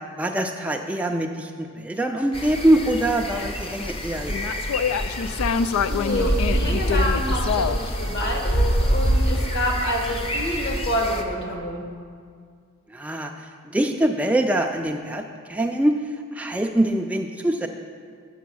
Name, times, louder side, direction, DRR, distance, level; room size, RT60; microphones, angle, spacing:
voice 1, 0.2-4.6 12.9-13.3 13.7-16.0 16.3-17.7, right 1 dB, 5° right, 3 dB, 0.3 m, -23 dB
sound 1, 2.3-11.2, equal, 30° left, 0.7 m, -25 dB
sound 2, 2.7-3.9 4.3-7.9, left 6 dB, 90° left, 0.3 m, -27 dB
voice 2, 5.9-11.9, equal, 55° left, 1 dB, 1.4 m, -27 dB
8.2 x 7.0 x 6.1 m, 2.1 s
head